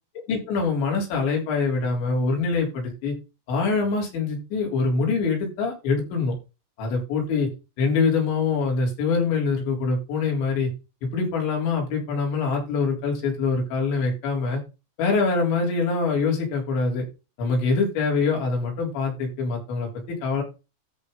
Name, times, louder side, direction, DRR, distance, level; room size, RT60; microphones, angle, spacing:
voice 1, 0.3-3.1 3.5-6.3 6.8-7.5 7.8-10.7 11.1-14.6 15.0-17.0 17.4-19.9 20.2-20.4, left 4 dB, 60° left, -1 dB, 6.1 m, -24 dB
14.0 x 4.8 x 4.0 m, 0.28 s
omnidirectional pair, 5.9 m